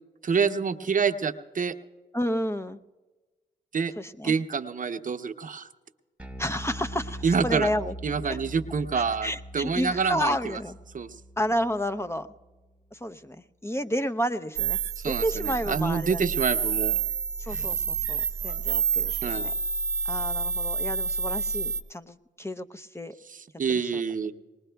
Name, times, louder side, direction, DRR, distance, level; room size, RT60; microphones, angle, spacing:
voice 1, 0.2-1.7 3.7-3.9 4.2-5.7 7.2-7.7 8.0-10.4 10.9-11.1 15.0-17.0 17.5-17.6 19.2-19.5 23.6-24.3, right 5 dB, 50° right, 9 dB, 0.7 m, -27 dB
voice 2, 2.1-2.8 4.0-4.3 6.4-7.9 8.3-8.4 8.9-10.8 11.4-12.3 12.9-13.4 13.6-16.2 17.4-19.5 20.0-23.2 23.9-24.0, equal, 15° left, 9 dB, 0.6 m, -31 dB
Bass guitar, 6.2-12.6, equal, 5° right, 1.0 m, -42 dB
sound 1, 14.6-21.8, right 6 dB, 80° right, 0.8 m, -28 dB
20.5 x 19.5 x 2.3 m, 1.2 s
supercardioid pair, 50°, 18 cm